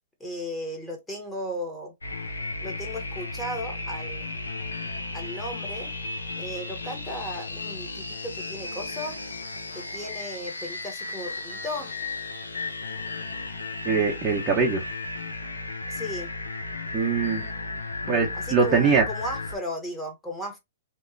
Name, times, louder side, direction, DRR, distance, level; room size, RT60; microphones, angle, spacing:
voice 1, 0.2-1.9 2.6-4.3 5.1-5.9 6.4-9.2 9.7-11.9 15.9-16.3 18.3-20.6, equal, 10° left, 1.0 m, -35 dB
sound 1, 2.0-19.6, left 3 dB, 90° left, 0.6 m, -34 dB
voice 2, 13.9-14.8 16.9-17.5 18.1-19.1, right 5 dB, 20° right, 0.7 m, -22 dB
3.0 x 2.1 x 2.6 m
hypercardioid pair, 120°, 0 cm